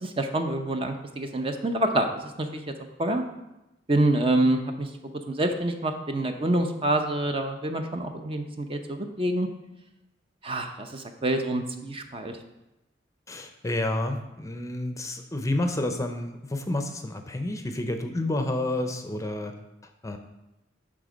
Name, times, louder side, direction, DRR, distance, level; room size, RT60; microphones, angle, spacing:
voice 1, 0.0-2.6 3.0-3.2 3.9-4.9 5.3-9.5 10.4-12.3, right 1 dB, 30° right, 5 dB, 0.6 m, -27 dB
voice 2, 13.3-19.5 20.0-20.2, left 1 dB, 20° left, 6 dB, 0.6 m, -29 dB
11.0 x 3.7 x 5.2 m, 0.95 s
head